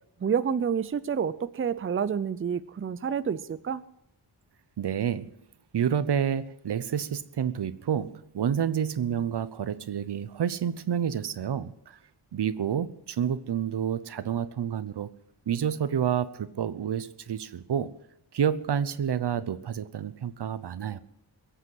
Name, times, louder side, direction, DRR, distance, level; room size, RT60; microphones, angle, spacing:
voice 1, 0.2-3.8, right 7 dB, 35° right, 0.5 m, -28 dB
voice 2, 4.8-5.3 5.7-12.0 12.3-15.1 15.5-17.9 18.3-21.0, right 8 dB, 85° right, 0.9 m, -29 dB
22.5 x 8.2 x 7.8 m
wide cardioid pair, 150°, 39 cm